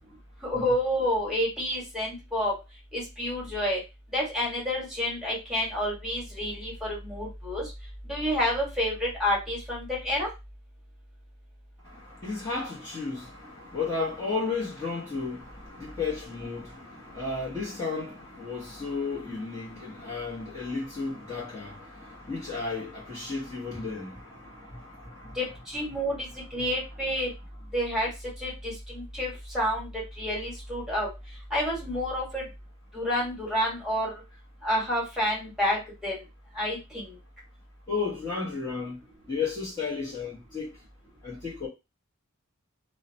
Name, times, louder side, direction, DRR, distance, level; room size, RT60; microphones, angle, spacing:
voice 1, 0.4-2.5 2.9-3.8 4.1-7.6 8.1-10.3 25.3-27.3 27.7-28.1 28.4-29.9 30.2-31.1 31.5-32.4 32.9-34.2 34.6-36.2 36.5-37.1, equal, 5° right, 1.3 m, -29 dB
voice 2, 11.8-25.4 37.9-39.0 39.3-40.7 41.2-41.7, left 4 dB, 20° left, 0.9 m, -33 dB
2.7 x 2.1 x 2.6 m
head